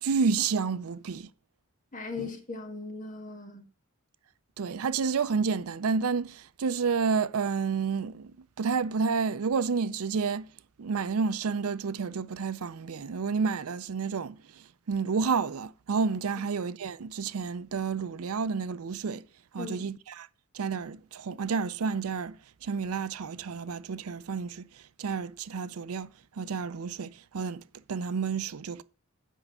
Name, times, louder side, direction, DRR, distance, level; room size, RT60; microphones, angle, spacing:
voice 1, 0.0-1.3 2.2-2.3 4.6-8.3 8.6-10.5 10.8-19.2 19.5-20.3 20.5-22.4 22.6-24.7 25.0-26.1 26.4-27.6 27.9-28.8, right 5 dB, 75° right, 0.5 m, -30 dB
voice 2, 1.9-3.6 19.6-19.9, left 3 dB, 35° left, 1.8 m, -38 dB
8.3 x 5.4 x 6.9 m
head